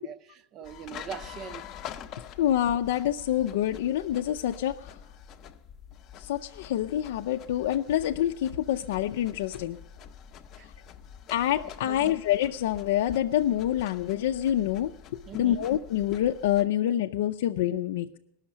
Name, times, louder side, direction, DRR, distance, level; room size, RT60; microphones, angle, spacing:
voice 1, 0.0-1.7 10.6-10.7 11.3-12.2 15.3-15.7, right 8 dB, 30° right, 0.7 m, -42 dB
sound 1, 0.6-16.7, left 8 dB, 30° left, 0.7 m, -46 dB
voice 2, 2.4-5.0 6.2-9.8 11.3-14.9 15.3-18.2, left 12 dB, 75° left, 0.6 m, -27 dB
19.5 x 6.5 x 9.8 m
supercardioid pair, 165°, 0 cm